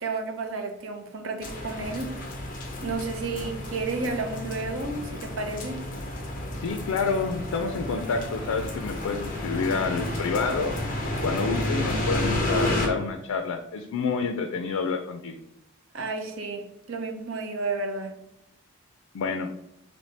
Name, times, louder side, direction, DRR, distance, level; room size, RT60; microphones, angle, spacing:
voice 1, 0.0-2.2 2.8-5.8 15.9-18.1, right 3 dB, 60° right, 4 dB, 0.6 m, -32 dB
sound 1, 1.4-12.9, left 1 dB, 40° left, 0.7 m, -31 dB
voice 2, 6.6-10.8 11.2-15.4 19.1-19.5, left 4 dB, 85° left, 6 dB, 0.4 m, -28 dB
4.2 x 2.8 x 3.2 m, 0.83 s
head